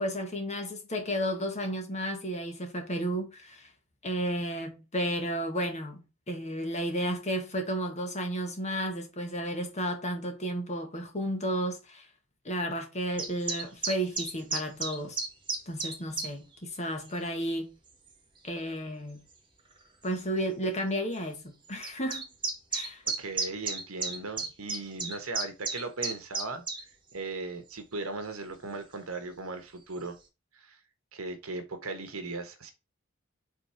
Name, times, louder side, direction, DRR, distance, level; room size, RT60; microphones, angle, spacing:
voice 1, 0.0-3.7 4.0-12.1 12.4-15.2 15.7-17.7 18.4-19.2 20.0-22.3 22.7-23.0, equal, 35° left, 1.6 m, -33 dB
sound 1, 13.2-16.3 17.0-17.2 18.1-18.2 19.3-19.4 19.7-19.8 20.0-20.1 21.8-26.8, right 4 dB, 25° right, 1.7 m, -32 dB
voice 2, 23.0-26.6 27.1-30.2 30.5-30.8 31.1-32.7, right 3 dB, 80° right, 1.3 m, -38 dB
5.1 x 3.7 x 5.7 m
head